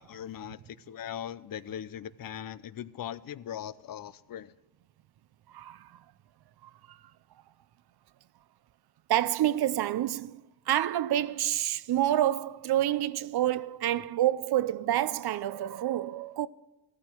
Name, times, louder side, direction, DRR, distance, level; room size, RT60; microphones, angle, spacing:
voice 1, 0.0-4.5, left 10 dB, 55° left, 0.6 m, -40 dB
voice 2, 5.5-6.0 6.6-7.0 9.1-16.5, right 12 dB, 65° right, 0.6 m, -28 dB
15.0 x 13.5 x 4.5 m
cardioid pair, 100°, 41 cm